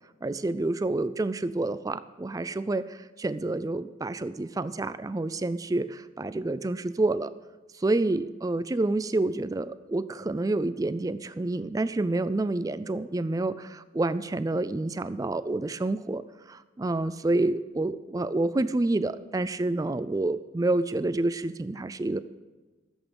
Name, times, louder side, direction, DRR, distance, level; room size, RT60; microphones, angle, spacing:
voice 1, 0.2-7.3 7.8-16.2 16.5-22.2, right 2 dB, 20° right, 14 dB, 0.3 m, -28 dB
14.0 x 8.1 x 5.3 m, 1.2 s
head